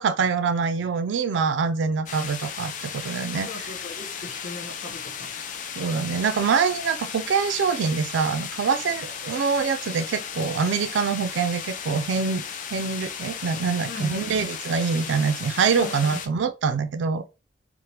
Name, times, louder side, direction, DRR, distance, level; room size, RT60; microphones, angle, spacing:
voice 1, 0.0-3.5 5.8-12.4 12.7-17.3, right 5 dB, 70° right, 0.3 m, -25 dB
sound 1, 2.1-16.3, left 7 dB, 45° left, 0.3 m, -35 dB
voice 2, 3.3-5.3 13.9-14.3 15.7-16.2, left 2 dB, 70° left, 1.1 m, -39 dB
3.2 x 2.0 x 2.8 m
head